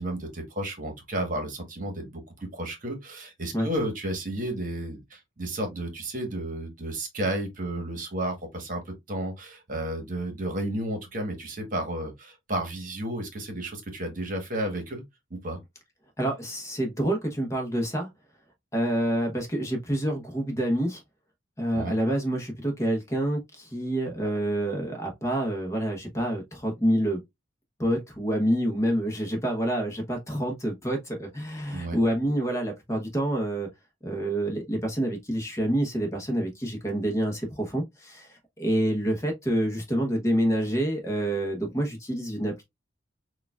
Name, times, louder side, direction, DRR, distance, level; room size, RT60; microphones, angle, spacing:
voice 1, 0.0-15.0 15.3-15.6 21.7-22.0 31.7-32.0, right 1 dB, 40° right, 1.2 m, -32 dB
voice 2, 16.2-18.1 18.7-21.0 21.6-27.2 27.8-33.7 34.0-42.6, right 1 dB, 15° left, 0.9 m, -27 dB
6.5 x 2.4 x 2.3 m
head